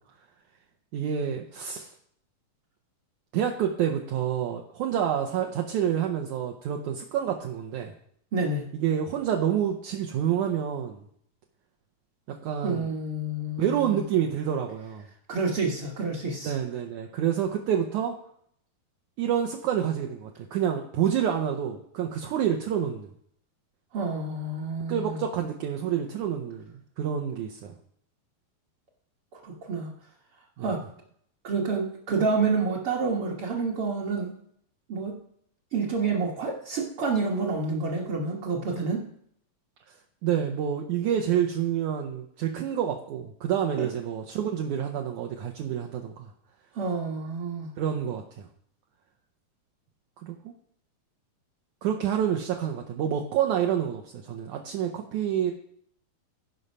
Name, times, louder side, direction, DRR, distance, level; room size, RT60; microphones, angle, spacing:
voice 1, 0.9-1.9 3.3-7.9 8.7-11.0 12.3-12.9 13.6-15.1 16.4-18.2 19.2-23.1 24.9-27.8 30.6-30.7 40.2-46.3 47.8-48.5 50.2-50.5 51.8-55.5, right 9 dB, 75° right, 3 dB, 1.8 m, -28 dB
voice 2, 8.3-8.7 12.6-14.0 15.3-16.5 23.9-25.2 29.3-29.9 30.6-30.8 31.4-34.3 34.9-35.1 35.7-39.0 43.8-43.9 46.7-47.7, right 4 dB, 55° right, -3 dB, 1.5 m, -28 dB
15.5 x 5.5 x 5.4 m, 0.67 s
omnidirectional pair, 4.2 m